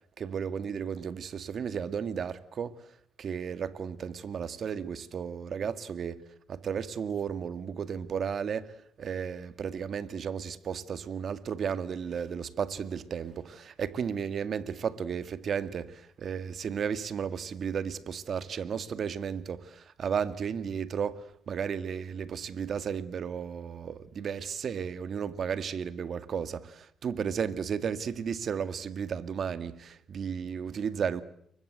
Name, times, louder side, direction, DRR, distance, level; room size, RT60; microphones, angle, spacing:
voice 1, 0.2-2.8 3.2-6.2 6.5-31.2, right 7 dB, 55° right, 2.0 m, -34 dB
29.5 x 24.0 x 7.9 m
cardioid pair, 90°, 0 cm